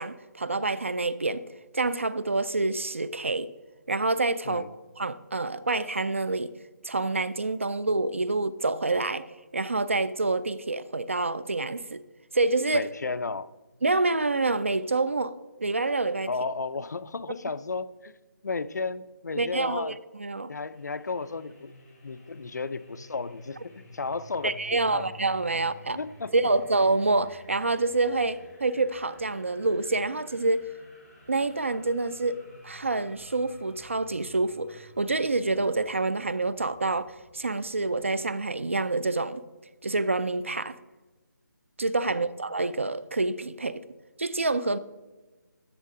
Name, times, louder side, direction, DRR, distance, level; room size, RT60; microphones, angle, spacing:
voice 1, 0.0-1.4 1.7-3.5 3.9-4.6 5.0-6.5 6.8-9.3 9.5-12.0 12.3-12.9 13.8-16.3 19.4-19.9 20.2-20.5 24.4-26.0 26.3-30.7 31.3-32.4 32.6-39.4 39.8-40.8 41.8-43.9 44.2-44.8, right 3 dB, 40° right, 0.3 m, -27 dB
voice 2, 12.7-13.5 16.3-18.2 18.4-20.0 20.5-21.7 22.0-25.1 25.9-26.3 42.1-42.2, left 4 dB, 60° left, 0.4 m, -33 dB
sound 1, 20.7-38.6, equal, 15° left, 1.5 m, -52 dB
13.0 x 6.5 x 3.7 m
hypercardioid pair, 180°, 10 cm